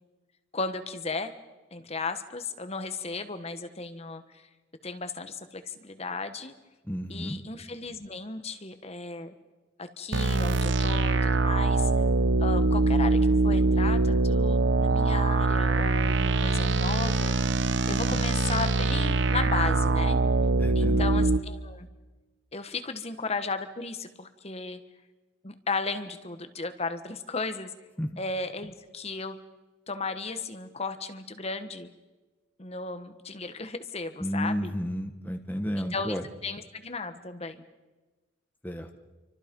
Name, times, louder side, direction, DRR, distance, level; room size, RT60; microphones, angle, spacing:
voice 1, 0.5-1.3 1.7-4.5 4.8-6.5 7.1-9.3 9.8-11.9 12.4-17.6 17.9-20.2 20.7-21.9 22.5-24.8 25.4-27.7 28.2-29.4 29.9-31.9 32.6-34.7 35.8-36.2 36.4-37.6, left 4 dB, 30° left, 9 dB, 1.3 m, -35 dB
voice 2, 6.8-7.4 18.1-18.2 20.6-21.1 28.0-28.1 34.2-36.3 38.6-38.9, equal, 10° left, 4 dB, 1.1 m, -32 dB
sound 1, 10.1-21.4, right 3 dB, 60° right, 0.8 m, -23 dB
29.5 x 25.0 x 5.3 m, 1.2 s
head